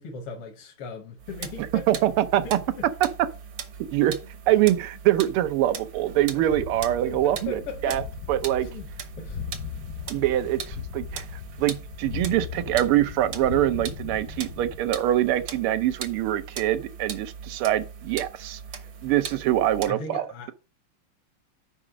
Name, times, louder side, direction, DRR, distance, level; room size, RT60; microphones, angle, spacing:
voice 1, 0.0-1.9 2.2-2.8 6.2-6.3 7.0-8.1 8.6-8.9 9.2-9.4 19.9-20.5, left 4 dB, 85° left, 2.0 m, -38 dB
sound 1, 1.2-19.9, right 7 dB, 60° right, 1.7 m, -40 dB
voice 2, 1.9-2.6 3.0-3.1 3.9-4.2 4.5-8.0 8.3-8.7 10.1-11.2 11.6-18.6 19.0-20.2, right 13 dB, 90° right, 1.6 m, -24 dB
sound 2, 6.1-14.8, left 8 dB, 65° left, 0.8 m, -38 dB
5.5 x 4.9 x 6.1 m
omnidirectional pair, 2.4 m